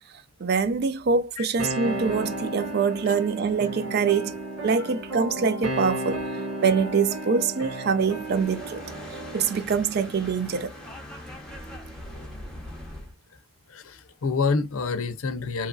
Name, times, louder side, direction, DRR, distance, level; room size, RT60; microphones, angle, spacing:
voice 1, 0.4-4.3 4.6-6.2 6.6-8.8 9.3-10.7, right 5 dB, 45° right, 0.3 m, -24 dB
sound 1, 1.6-9.6, right 1 dB, 85° right, 1.2 m, -33 dB
sound 2, 8.0-13.1, left 1 dB, 5° left, 0.7 m, -41 dB
voice 2, 13.7-15.7, left 4 dB, 75° left, 0.6 m, -27 dB
3.0 x 2.5 x 2.2 m
head